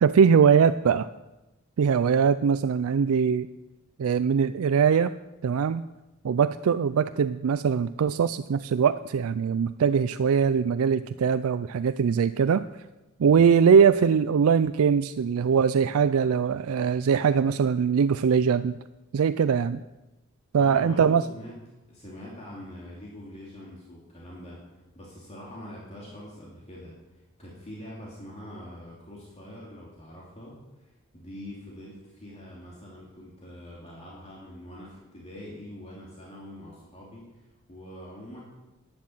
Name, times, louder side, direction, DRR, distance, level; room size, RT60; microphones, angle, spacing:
voice 1, 0.0-1.1 1.8-3.5 4.0-5.1 5.4-5.8 6.2-12.6 13.2-18.8 19.1-19.8 20.5-21.2, right 6 dB, 75° right, 13 dB, 0.4 m, -22 dB
voice 2, 20.5-21.5 21.9-24.6 24.9-26.9 27.4-38.4, left 1 dB, 30° left, -5 dB, 2.7 m, -44 dB
11.5 x 9.7 x 7.3 m, 1.0 s
head